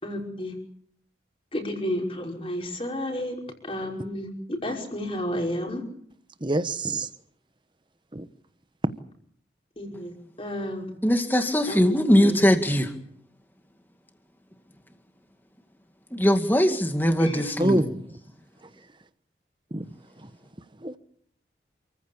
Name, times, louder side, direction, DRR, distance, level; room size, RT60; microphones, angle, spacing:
voice 1, 0.0-0.6 1.5-3.4 3.6-5.8 9.8-10.1 10.4-10.9 11.7-12.4 17.2-17.4, equal, 30° left, 5.5 m, -31 dB
voice 2, 6.4-7.1 8.1-8.2 17.6-17.9 19.7-19.8 20.8-21.0, right 1 dB, 25° right, 1.1 m, -25 dB
voice 3, 11.0-12.9 16.1-17.8, equal, 10° left, 2.1 m, -21 dB
28.5 x 15.0 x 8.7 m
head